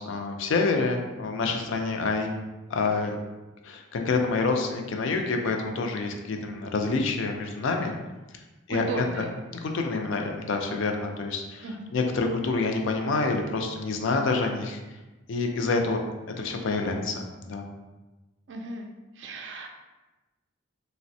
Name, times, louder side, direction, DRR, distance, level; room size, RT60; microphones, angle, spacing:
voice 1, 0.0-2.4 2.7-3.2 3.6-7.9 8.7-8.8 9.6-11.6 11.9-14.8 15.3-16.0 16.4-17.7, left 3 dB, 65° left, 3 dB, 0.4 m, -27 dB
voice 2, 8.7-9.3 11.6-11.9 18.5-18.9 19.1-19.7, right 3 dB, 60° right, 2 dB, 0.3 m, -35 dB
3.3 x 2.1 x 2.6 m, 1.1 s
head